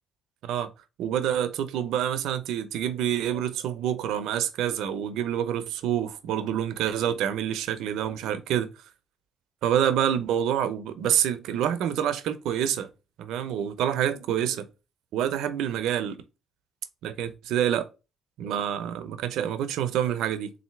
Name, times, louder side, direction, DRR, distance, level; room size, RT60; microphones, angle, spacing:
voice 1, 1.0-8.7 9.6-12.9 13.2-14.7 15.1-16.2 17.0-17.9 18.4-20.5, right 10 dB, 85° right, 0.6 m, -27 dB
4.0 x 2.7 x 4.2 m
cardioid pair, 90°, 0 cm